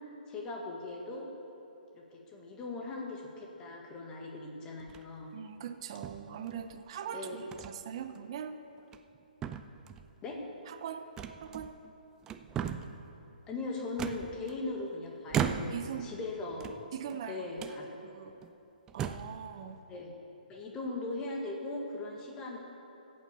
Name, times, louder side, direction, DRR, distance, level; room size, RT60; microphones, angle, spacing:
voice 1, 0.3-1.3 1.9-5.3 7.1-7.5 10.2-10.4 13.5-16.7 17.3-17.9 19.9-20.1 20.5-22.6, left 2 dB, 15° left, 0 dB, 1.6 m, -39 dB
sound 1, 4.8-5.2 6.0-6.8 7.5-7.8 8.2-8.3 8.8-9.2 9.4-10.1 11.2-11.9 12.2-13.0 14.0-14.8 15.3-16.0 16.5-17.2 17.6-17.8 18.4-18.5 18.9-19.4, right 8 dB, 10° right, 0.3 m, -37 dB
voice 2, 5.3-8.6 10.7-11.1 11.4-11.8 15.7-16.1 16.9-18.3 18.9-19.8, right 8 dB, 35° right, 9 dB, 0.7 m, -41 dB
14.5 x 8.7 x 6.9 m, 3.0 s
hypercardioid pair, 160°, 5 cm